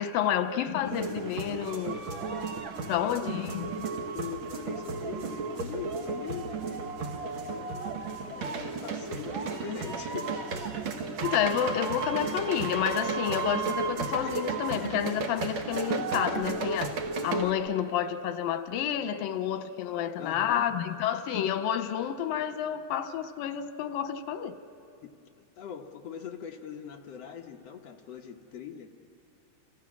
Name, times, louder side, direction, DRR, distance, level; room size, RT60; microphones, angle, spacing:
voice 1, 0.0-2.0 2.9-3.9 11.2-17.0 17.2-24.5, left 9 dB, 85° left, 10 dB, 2.6 m, -30 dB
sound 1, 0.8-17.5, right 4 dB, 55° right, 1.4 m, -33 dB
voice 2, 2.8-3.4 4.1-7.7 8.2-10.8 20.2-20.8 25.0-25.1 25.4-28.9, left 8 dB, 65° left, 3 dB, 1.7 m, -42 dB
29.5 x 27.0 x 6.1 m, 2.4 s
omnidirectional pair, 4.0 m